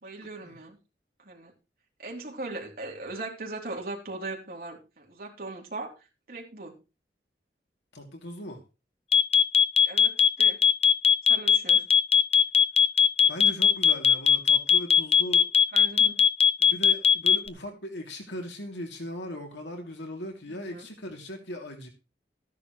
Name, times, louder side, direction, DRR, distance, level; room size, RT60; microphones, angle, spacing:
voice 1, 0.0-0.8 1.3-1.5 2.0-5.9 6.3-6.8 9.9-10.6 11.3-11.8 15.7-16.2 20.5-20.9, right 2 dB, 55° right, 3.4 m, -39 dB
voice 2, 7.9-8.6 13.3-15.5 16.6-21.9, equal, 90° left, 2.8 m, -38 dB
sound 1, 9.1-17.5, left 7 dB, 35° left, 0.7 m, -18 dB
14.0 x 10.5 x 3.2 m
head